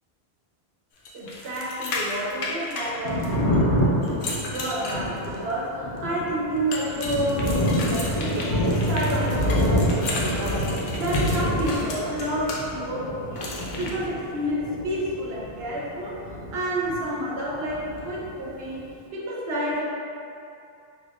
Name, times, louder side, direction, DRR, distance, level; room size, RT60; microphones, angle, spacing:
sound 1, 1.1-3.6 4.0-5.5 6.7-12.6 13.4-13.9, left 2 dB, 65° left, 0.7 m, -34 dB
voice 1, 1.1-13.5 13.8-19.9, right 1 dB, 75° right, -4 dB, 0.9 m, -30 dB
Thunder, 2.8-17.3 17.5-18.8, equal, 90° left, 0.9 m, -27 dB
3.0 x 2.4 x 3.4 m, 2.5 s
omnidirectional pair, 1.0 m